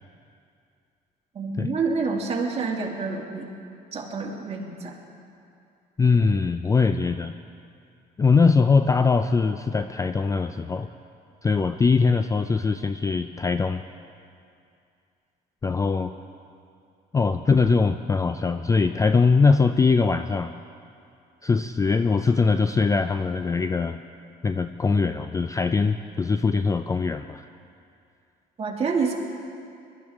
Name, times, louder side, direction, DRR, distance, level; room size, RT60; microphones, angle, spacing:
voice 1, 1.3-3.5 3.9-5.0 28.6-29.1, right 4 dB, 35° right, -2 dB, 2.3 m, -27 dB
voice 2, 6.0-7.3 8.2-10.9 11.4-13.8 15.6-16.1 17.1-20.5 21.4-24.0 24.4-27.5, left 4 dB, 20° left, 9 dB, 0.3 m, -22 dB
21.5 x 12.5 x 3.6 m, 2.5 s
cardioid pair, 110°, 17 cm